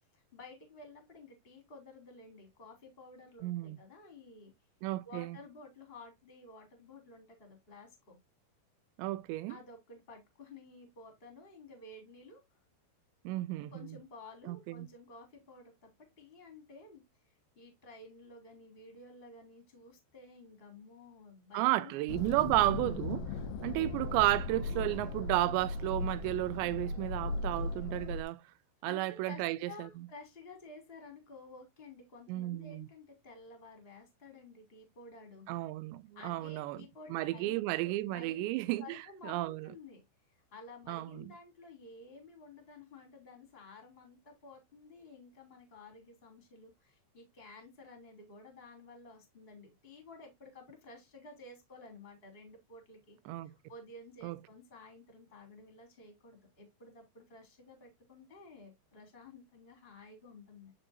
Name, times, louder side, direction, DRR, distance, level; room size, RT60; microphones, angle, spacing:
voice 1, 0.0-4.5 5.0-8.2 9.5-12.4 13.7-15.9 16.2-17.0 17.5-22.5 28.8-35.5 36.1-37.6 37.8-38.5 38.8-40.0 40.5-53.2 53.4-60.7, left 3 dB, 15° left, 2.6 m, -53 dB
voice 2, 3.4-3.8 4.8-5.4 9.0-9.6 13.3-14.0 14.5-14.9 21.5-23.3 23.6-28.4 28.8-29.9 32.3-32.9 35.5-39.7 40.9-41.3 53.3-53.5 54.2-54.4, right 17 dB, 85° right, 2.7 m, -33 dB
sound 1, 22.1-28.2, left 3 dB, 70° left, 2.4 m, -37 dB
9.6 x 5.4 x 2.7 m
omnidirectional pair, 5.1 m